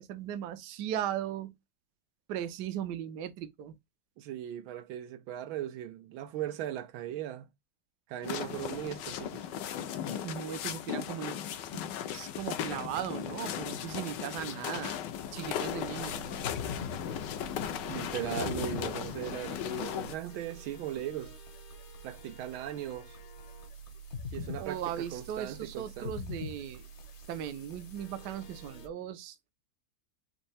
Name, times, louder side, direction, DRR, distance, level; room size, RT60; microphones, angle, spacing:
voice 1, 0.0-1.5 2.3-3.7 10.2-11.4 11.7-11.8 12.1-15.0 15.3-16.2 24.4-26.8 27.3-29.5, right 10 dB, 65° right, 1.1 m, -37 dB
voice 2, 4.2-7.5 8.1-9.5 17.9-21.4 22.0-23.2 24.3-26.1, right 12 dB, 85° right, 1.5 m, -38 dB
sound 1, 8.2-20.1, left 9 dB, 70° left, 1.2 m, -37 dB
sound 2, 15.2-28.9, left 2 dB, 50° left, 0.9 m, -45 dB
4.4 x 2.7 x 4.1 m
omnidirectional pair, 2.2 m